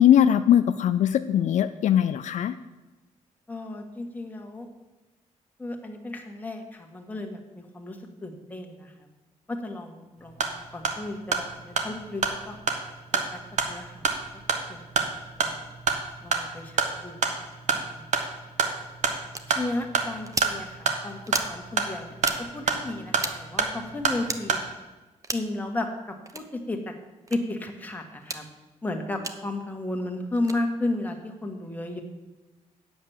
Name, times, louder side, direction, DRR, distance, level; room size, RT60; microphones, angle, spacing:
voice 1, 0.0-2.6, left 10 dB, 70° left, 10 dB, 0.4 m, -20 dB
voice 2, 3.5-4.7 5.6-9.1 9.5-12.6 13.1-13.4 13.7-14.1 14.7-15.7 16.2-17.3 17.7-18.1 19.5-24.6 25.3-26.9 27.3-28.5 28.8-32.0, left 2 dB, 15° left, 3 dB, 1.6 m, -34 dB
sound 1, 10.2-24.7, right 5 dB, 70° right, 1.3 m, -29 dB
sound 2, 19.3-19.4 20.3-20.5 21.3-21.5 22.2-22.4 23.2-23.4 24.2-24.4 25.2-25.5 26.3-26.4 27.3-27.4 28.2-28.4 29.2-29.4 30.4-30.6, right 3 dB, 25° right, 0.8 m, -32 dB
8.6 x 7.0 x 7.3 m, 1.1 s
cardioid pair, 115°, 13 cm